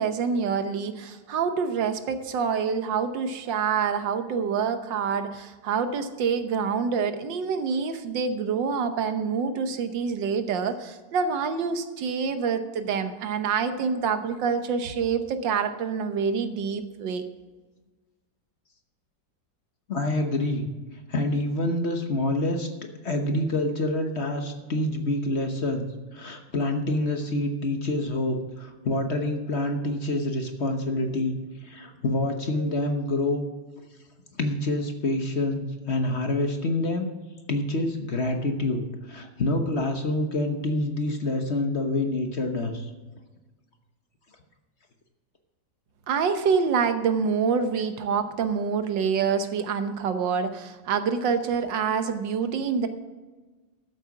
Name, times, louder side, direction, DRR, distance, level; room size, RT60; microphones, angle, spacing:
voice 1, 0.0-17.2 46.1-52.9, right 6 dB, 85° right, 9 dB, 1.7 m, -26 dB
voice 2, 19.9-20.7 21.1-22.7 23.0-25.9 26.1-33.4 34.4-37.1 37.5-42.9, left 2 dB, 40° left, 5 dB, 1.2 m, -27 dB
13.0 x 7.9 x 5.9 m, 1.3 s
omnidirectional pair, 1.9 m